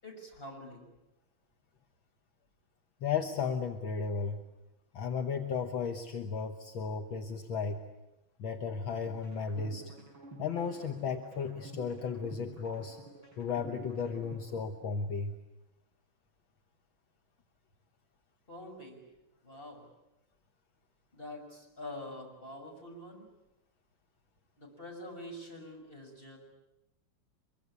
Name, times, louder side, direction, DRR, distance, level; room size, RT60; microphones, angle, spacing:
voice 1, 0.0-0.9 18.5-19.0 19.4-19.9 21.1-23.3 24.6-26.4, left 1 dB, 25° left, 1 dB, 6.4 m, -46 dB
voice 2, 3.0-4.4 4.9-7.8 8.4-9.9 10.4-13.0 13.4-15.3, left 5 dB, 70° left, 5 dB, 2.1 m, -34 dB
sound 1, 9.1-15.1, right 2 dB, 70° right, 8.0 m, -50 dB
24.0 x 23.0 x 9.8 m, 0.93 s
omnidirectional pair, 2.4 m